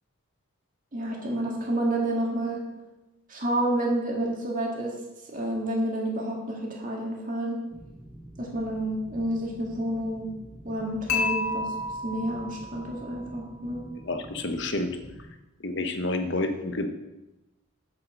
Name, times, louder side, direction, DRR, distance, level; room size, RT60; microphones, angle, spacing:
voice 1, 0.9-2.6 3.3-4.9 5.3-7.6 8.4-10.3 10.6-11.7 12.0-13.8, right 1 dB, 35° right, -1 dB, 2.0 m, -29 dB
sound 1, 7.7-15.3, right 1 dB, ahead, 3.3 m, -47 dB
Dishes pots and pans / Chink clink, 11.1-13.2, left 2 dB, 80° left, 2.3 m, -30 dB
voice 2, 14.0-14.9 15.6-16.9, left 2 dB, 55° left, 7 dB, 1.0 m, -29 dB
7.5 x 7.5 x 6.5 m, 1.0 s
head